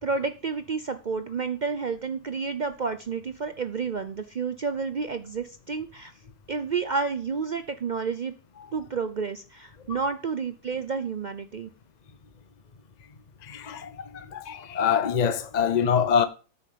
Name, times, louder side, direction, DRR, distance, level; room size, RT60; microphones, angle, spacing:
voice 1, 0.0-6.1 6.5-8.3 8.7-11.7, right 5 dB, 90° right, 0.4 m, -30 dB
voice 2, 13.4-16.3, left 7 dB, 45° left, 0.5 m, -25 dB
9.3 x 6.9 x 6.8 m
omnidirectional pair, 1.7 m